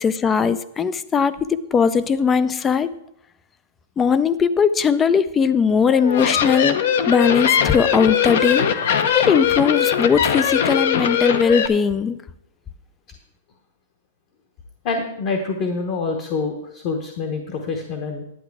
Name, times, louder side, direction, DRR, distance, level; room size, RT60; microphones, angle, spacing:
voice 1, 0.0-2.9 4.0-6.8 7.1-8.7 9.1-12.2, left 6 dB, 10° left, 16 dB, 0.4 m, -19 dB
sound 1, 5.9-11.7, left 8 dB, 55° left, 0.7 m, -20 dB
voice 2, 14.8-18.2, left 4 dB, 35° left, 3 dB, 1.1 m, -26 dB
11.0 x 8.9 x 4.7 m, 0.81 s
supercardioid pair, 175°, 0 cm